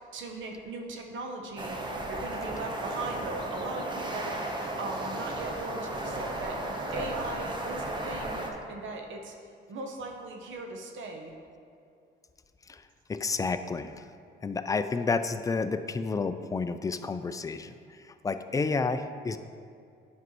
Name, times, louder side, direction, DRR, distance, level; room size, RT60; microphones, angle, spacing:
voice 1, 0.1-1.8 2.1-8.4 8.7-9.4 9.7-11.3, right 3 dB, 75° right, 2 dB, 0.9 m, -39 dB
sound 1, 1.6-8.5, right 1 dB, 25° right, 0.9 m, -34 dB
voice 2, 13.1-13.9 14.4-17.7 18.2-19.4, left 4 dB, 15° left, 10 dB, 0.3 m, -30 dB
9.4 x 5.3 x 3.1 m, 2.4 s
cardioid pair, 90°, 20 cm